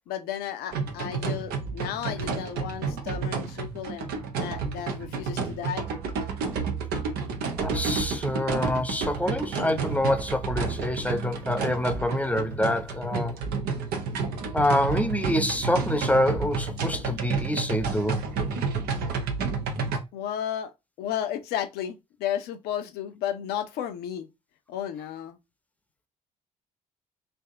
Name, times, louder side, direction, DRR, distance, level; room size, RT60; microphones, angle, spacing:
voice 1, 0.0-4.1 4.4-5.9 20.1-20.7 21.0-24.3 24.7-25.4, left 10 dB, 65° left, 0.7 m, -33 dB
sound 1, 0.7-20.0, right 4 dB, 65° right, 0.8 m, -30 dB
voice 2, 7.6-13.3 14.5-18.2, left 1 dB, 10° left, 0.8 m, -26 dB
3.4 x 2.7 x 3.6 m
hypercardioid pair, 50°, 17 cm